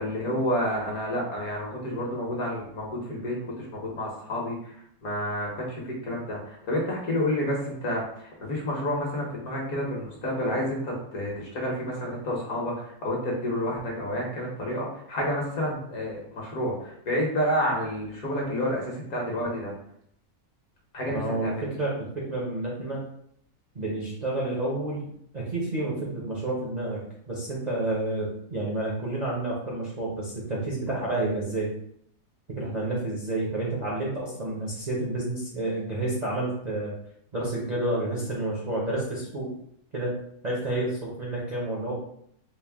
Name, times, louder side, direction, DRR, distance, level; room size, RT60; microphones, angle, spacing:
voice 1, 0.0-19.7 20.9-21.7, equal, 65° left, -2 dB, 1.5 m, -30 dB
voice 2, 21.1-23.0 23.7-25.0 25.3-27.0 27.3-31.7 32.5-37.0 37.3-39.5 39.9-40.2 40.4-41.9, right 2 dB, 45° right, -6 dB, 0.6 m, -30 dB
4.4 x 2.1 x 3.4 m, 0.69 s
omnidirectional pair, 1.7 m